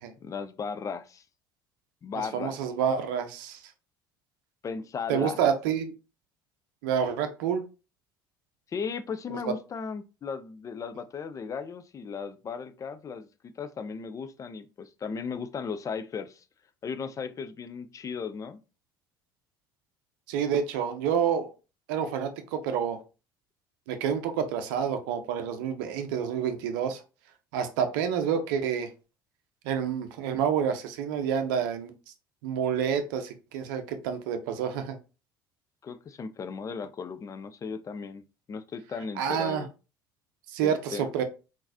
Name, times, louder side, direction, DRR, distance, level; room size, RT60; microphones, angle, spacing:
voice 1, 0.2-1.2 2.0-2.6 4.6-5.4 8.7-16.4 16.8-18.6 35.8-38.2 38.5-39.7 40.6-41.1, left 5 dB, 30° left, 0.4 m, -36 dB
voice 2, 2.3-3.6 5.1-5.9 6.8-7.6 20.3-21.5 21.9-23.0 23.9-27.0 27.5-28.9 29.6-31.9 32.4-35.0 39.2-39.7 40.5-41.2, right 8 dB, 65° right, 0.5 m, -28 dB
3.8 x 2.5 x 2.6 m
figure-of-eight pair, 60°, 12 cm